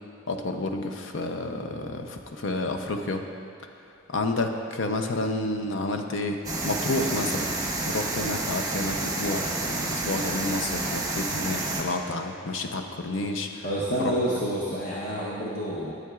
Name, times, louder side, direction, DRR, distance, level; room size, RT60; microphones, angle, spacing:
voice 1, 0.3-3.2 4.1-7.5 7.9-13.7 14.0-14.1, left 2 dB, 80° left, 4 dB, 0.6 m, -30 dB
sound 1, 6.4-11.8, right 2 dB, 15° right, 0.8 m, -29 dB
voice 2, 13.6-15.9, equal, 50° left, -6 dB, 0.8 m, -29 dB
12.5 x 7.8 x 2.4 m, 2.5 s
head